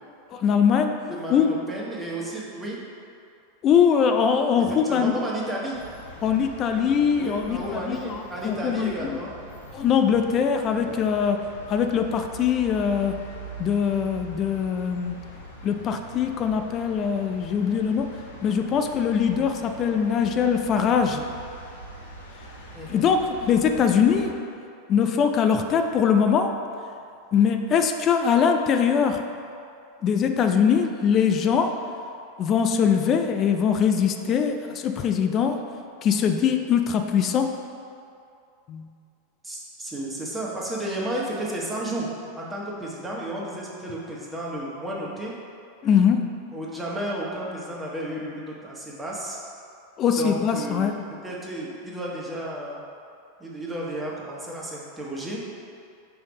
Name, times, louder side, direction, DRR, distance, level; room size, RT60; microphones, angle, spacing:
voice 1, 0.3-1.0 1.3-1.5 3.6-5.1 6.2-9.2 9.7-13.2 13.6-15.2 15.6-18.2 18.4-21.2 22.9-24.4 24.9-26.5 27.3-29.2 30.0-31.8 32.4-35.6 36.0-37.6 38.7-38.9 45.8-46.4 50.0-51.0, left 7 dB, 35° left, 6 dB, 0.4 m, -22 dB
voice 2, 1.1-2.8 4.8-5.8 7.2-9.3 10.8-11.0 19.8-20.1 22.7-23.1 39.4-42.1 42.4-45.3 46.5-49.4 50.2-52.8 53.4-55.4, right 1 dB, 10° right, -4 dB, 1.3 m, -32 dB
sound 1, 5.7-24.3, right 1 dB, 85° left, 0.9 m, -43 dB
5.5 x 3.4 x 5.2 m, 2.5 s
figure-of-eight pair, 90°, 0 cm